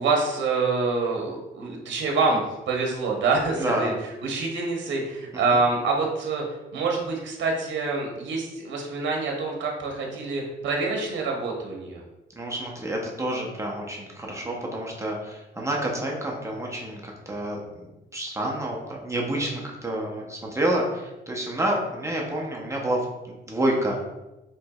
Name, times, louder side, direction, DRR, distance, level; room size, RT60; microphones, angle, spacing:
voice 1, 0.0-3.9 4.2-6.4 6.7-12.0, right 3 dB, 65° right, 0 dB, 0.9 m, -26 dB
voice 2, 3.6-3.9 5.3-5.6 12.4-17.9 18.1-24.0, right 1 dB, 15° right, -2 dB, 0.7 m, -29 dB
4.5 x 3.1 x 2.3 m, 1.0 s
cardioid pair, 90°, 20 cm